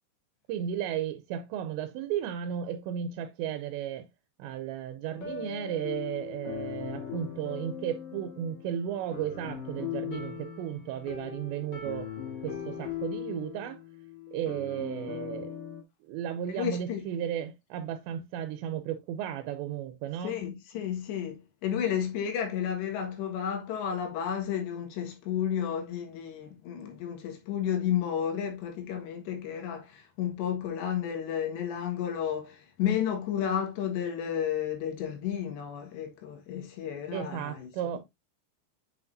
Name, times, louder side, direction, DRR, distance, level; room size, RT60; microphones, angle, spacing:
voice 1, 0.5-4.1 4.4-12.1 12.4-13.8 14.3-15.5 16.0-20.4 37.1-38.0, right 10 dB, 85° right, 2.9 m, -34 dB
sound 1, 5.1-15.8, left 8 dB, 60° left, 1.1 m, -39 dB
voice 2, 16.5-17.0 20.2-38.0, left 9 dB, 80° left, 3.8 m, -32 dB
7.6 x 5.8 x 2.6 m
omnidirectional pair, 5.0 m